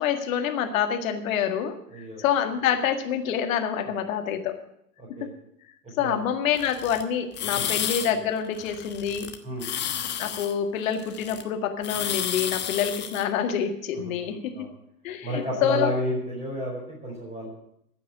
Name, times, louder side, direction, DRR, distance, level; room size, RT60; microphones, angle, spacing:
voice 1, 0.0-4.6 5.1-5.3 6.0-9.3 10.2-14.7 15.0-15.9, left 8 dB, 55° left, 6 dB, 1.9 m, -27 dB
voice 2, 1.9-2.2 5.0-5.3 6.0-6.2 7.5-7.7 9.4-9.7 14.0-14.7 15.2-17.5, equal, 15° right, -4 dB, 4.7 m, -31 dB
sound 1, 6.5-7.0 7.3-8.1 8.4-9.3 9.6-11.4 11.8-13.2, left 9 dB, 20° left, 1.2 m, -31 dB
15.0 x 6.0 x 9.8 m, 0.76 s
figure-of-eight pair, 105°, 48 cm